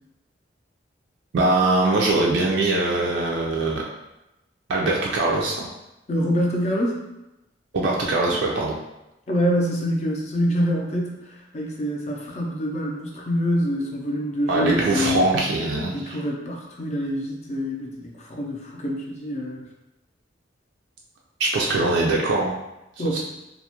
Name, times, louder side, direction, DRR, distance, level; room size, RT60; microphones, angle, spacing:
voice 1, 1.3-3.8 4.7-5.7 7.7-8.8 14.5-16.2 21.4-22.5 23.1-23.2, right 2 dB, 75° right, -2 dB, 0.4 m, -22 dB
voice 2, 6.1-7.0 8.3-8.4 9.3-15.2 15.9-19.7 23.0-23.2, equal, 35° left, -1 dB, 0.4 m, -26 dB
2.3 x 2.1 x 2.8 m, 0.93 s
head